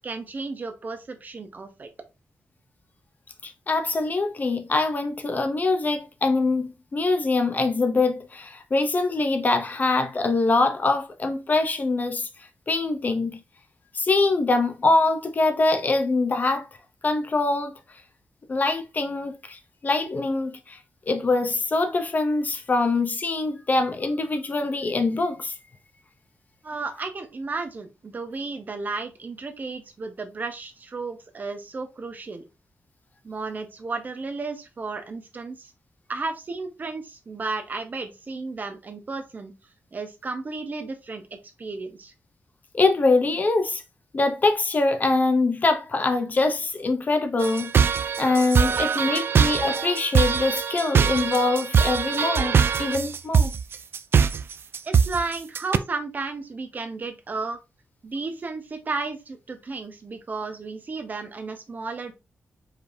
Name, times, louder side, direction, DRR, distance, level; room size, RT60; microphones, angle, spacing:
voice 1, 0.0-1.9 26.6-32.5 33.2-35.7 36.1-39.5 39.9-41.2 41.6-42.1 54.8-57.6 58.0-62.1, right 3 dB, 40° right, 0.8 m, -33 dB
voice 2, 3.4-13.4 13.9-16.7 17.0-17.8 18.5-20.8 21.1-25.5 42.7-43.8 44.1-47.8 48.2-53.5, left 3 dB, 40° left, 0.7 m, -24 dB
sound 1, 47.4-55.8, right 6 dB, 55° right, 0.3 m, -22 dB
4.9 x 3.3 x 2.6 m
wide cardioid pair, 115°, 5 cm